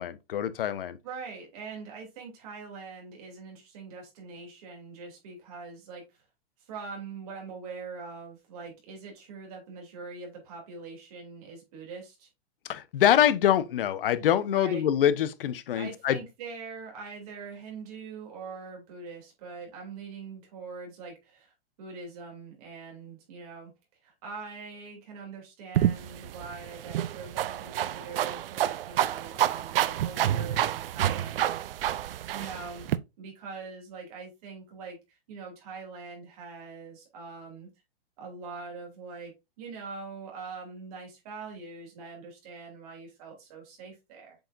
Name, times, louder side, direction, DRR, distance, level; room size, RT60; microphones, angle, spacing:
voice 1, 0.0-1.0 12.7-16.2, left 10 dB, 65° left, 0.8 m, -25 dB
voice 2, 1.0-6.2 6.7-12.3 14.5-14.9 15.7-23.7 24.0-31.7 32.3-32.9 33.2-37.7 38.2-44.4, right 4 dB, 40° right, 2.9 m, -43 dB
sound 1, 25.7-33.0, right 12 dB, 65° right, 0.5 m, -29 dB
7.7 x 4.8 x 2.5 m
supercardioid pair, 175°, 30 cm